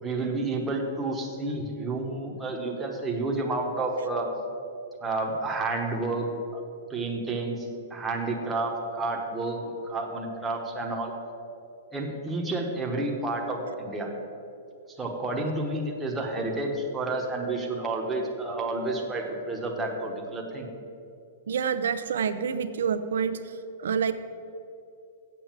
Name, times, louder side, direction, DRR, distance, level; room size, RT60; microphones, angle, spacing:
voice 1, 0.0-4.3 5.0-6.6 6.9-11.1 11.9-14.1 15.0-20.7, right 2 dB, 5° right, -1 dB, 1.0 m, -30 dB
voice 2, 21.5-23.4 23.8-24.1, right 7 dB, 85° right, 11 dB, 0.7 m, -27 dB
8.1 x 7.4 x 7.3 m, 2.6 s
supercardioid pair, 175°, 0 cm